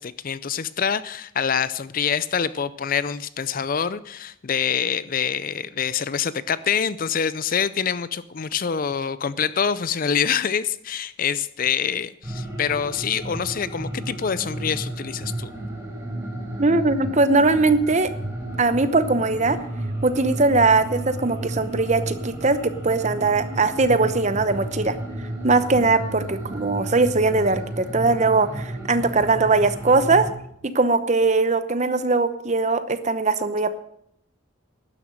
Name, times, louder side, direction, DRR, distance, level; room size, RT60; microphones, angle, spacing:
voice 1, 0.0-15.5, left 7 dB, 40° left, 16 dB, 0.4 m, -25 dB
sound 1, 12.2-30.3, right 1 dB, 15° right, 3.3 m, -32 dB
voice 2, 16.6-18.1 18.6-19.6 20.0-24.9 25.4-30.3 30.6-33.7, right 3 dB, 35° right, 11 dB, 0.8 m, -20 dB
12.0 x 11.0 x 6.4 m, 0.71 s
head